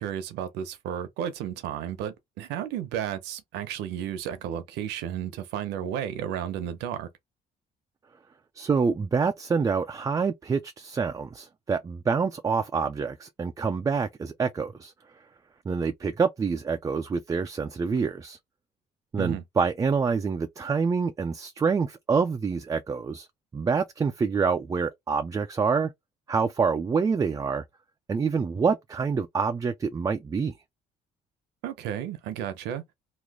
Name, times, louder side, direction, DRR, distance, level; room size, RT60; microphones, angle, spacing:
voice 1, 0.0-7.1 19.2-19.4 31.6-32.8, right 10 dB, 90° right, 0.8 m, -33 dB
voice 2, 8.6-14.9 15.7-18.4 19.1-23.3 23.5-25.9 26.3-27.6 28.1-30.5, right 5 dB, 20° right, 0.3 m, -26 dB
3.0 x 2.4 x 3.6 m
cardioid pair, 110°, 17 cm